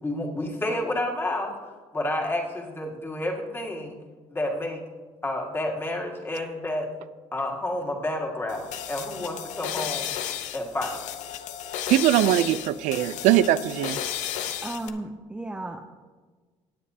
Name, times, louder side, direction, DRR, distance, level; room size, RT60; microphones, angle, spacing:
voice 1, 0.0-1.5 1.9-4.0 4.3-4.8 5.2-6.9 7.3-10.1 10.5-11.0, left 1 dB, 20° left, 0 dB, 1.9 m, -30 dB
sound 1, 8.5-14.9, left 10 dB, 75° left, 0.7 m, -33 dB
voice 2, 11.9-14.0, right 13 dB, 80° right, 15 dB, 0.4 m, -21 dB
voice 3, 14.5-15.8, right 2 dB, 10° right, 3 dB, 0.6 m, -34 dB
19.0 x 7.5 x 2.8 m, 1.4 s
cardioid pair, 120°, 13 cm